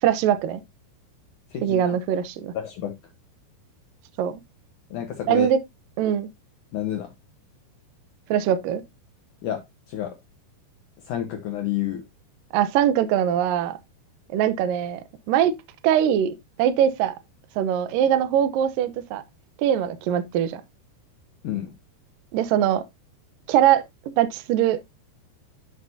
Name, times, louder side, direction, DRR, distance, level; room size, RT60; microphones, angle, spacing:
voice 1, 0.0-0.6 1.6-2.5 4.2-4.4 5.3-5.6 6.0-6.3 8.3-8.8 12.5-13.8 14.3-15.0 15.3-15.5 15.8-17.1 17.6-19.2 19.6-20.6 22.3-22.8 23.5-24.8, right 10 dB, 85° right, 1.9 m, -22 dB
voice 2, 1.5-2.0 2.5-2.9 4.9-5.5 6.7-7.1 9.4-9.6 9.9-10.2 11.1-12.0 21.4-21.7, left 11 dB, 85° left, 1.8 m, -29 dB
11.5 x 6.3 x 2.7 m
omnidirectional pair, 5.1 m